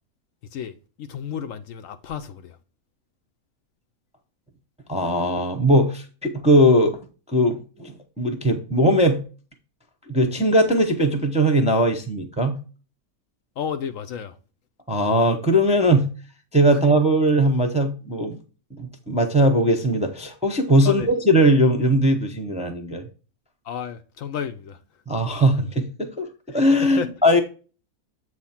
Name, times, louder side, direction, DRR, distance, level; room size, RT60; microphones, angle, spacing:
voice 1, 0.5-2.6 13.6-14.4 20.8-21.1 23.7-24.8 26.8-27.1, left 8 dB, 70° left, 0.9 m, -32 dB
voice 2, 4.9-7.0 7.3-9.2 10.1-12.6 14.9-16.1 16.5-18.4 18.7-23.1 25.1-27.4, equal, 5° right, 0.6 m, -19 dB
7.9 x 3.2 x 5.7 m
omnidirectional pair, 1.6 m